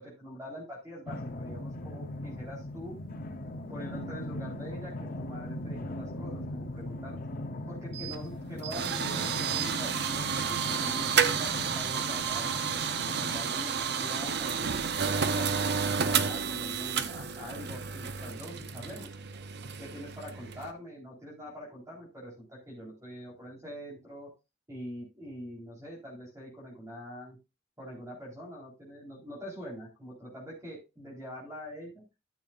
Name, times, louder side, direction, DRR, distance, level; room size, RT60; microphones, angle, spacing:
voice 1, 0.0-2.9 3.7-7.2 7.6-14.7 15.1-19.1 19.8-24.3 24.7-27.4 27.8-32.1, equal, 15° right, -6 dB, 4.1 m, -44 dB
sound 1, 1.1-13.5, left 1 dB, 50° left, 0.9 m, -39 dB
sound 2, 7.9-20.7, right 6 dB, 60° right, 0.8 m, -31 dB
13.5 x 7.0 x 2.5 m, 0.27 s
head